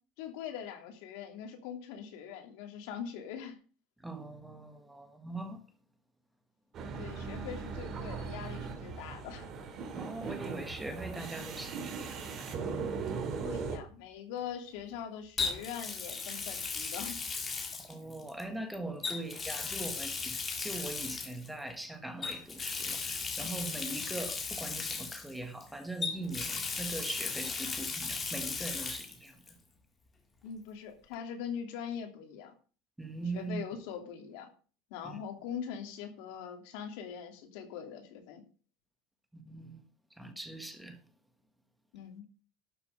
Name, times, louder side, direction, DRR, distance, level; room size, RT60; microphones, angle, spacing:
voice 1, 0.2-3.6 7.0-9.5 13.4-17.2 23.4-23.6 30.4-32.5 33.3-34.5 34.9-38.4 41.9-42.3, left 8 dB, 75° left, 2.9 m, -42 dB
voice 2, 4.0-5.6 10.0-12.6 17.8-29.6 33.0-33.6 35.0-35.2 39.3-39.8 40.1-41.0, right 2 dB, 5° right, 1.5 m, -41 dB
sound 1, 6.7-13.8, right 5 dB, 35° right, 2.9 m, -39 dB
Water tap faucet, 12.4-12.6 15.4-18.4 19.0-21.5 22.2-25.6 26.0-29.2 29.5-29.6 31.1-31.2, left 4 dB, 20° left, 2.1 m, -36 dB
12.0 x 6.9 x 6.6 m
cardioid pair, 170°, 0 cm